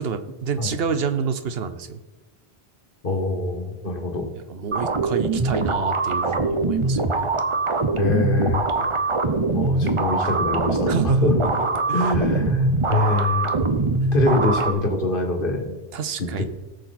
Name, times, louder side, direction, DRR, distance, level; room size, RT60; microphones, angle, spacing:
voice 1, 0.0-2.0 4.5-7.3 10.9-11.3 11.9-12.1 15.9-16.5, right 6 dB, 70° right, 10 dB, 1.0 m, -28 dB
voice 2, 3.0-4.3 8.0-8.7 9.5-10.9 11.2-11.4 11.9-13.6 14.1-15.8 16.2-16.5, left 2 dB, 55° left, 3 dB, 1.8 m, -24 dB
sound 1, 4.7-14.7, right 3 dB, 35° right, 0.7 m, -22 dB
17.5 x 6.6 x 4.2 m, 1.1 s
omnidirectional pair, 1.1 m